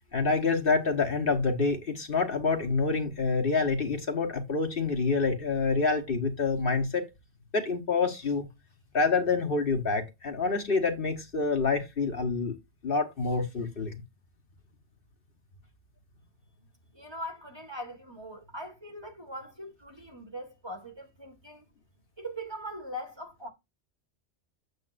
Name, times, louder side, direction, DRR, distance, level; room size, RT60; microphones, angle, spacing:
voice 1, 0.1-7.0 7.5-8.5 8.9-12.5 12.8-14.0, left 4 dB, 55° left, 1.4 m, -27 dB
voice 2, 16.9-21.7 22.2-23.5, equal, 25° right, 1.6 m, -41 dB
8.2 x 8.0 x 2.5 m
omnidirectional pair, 1.2 m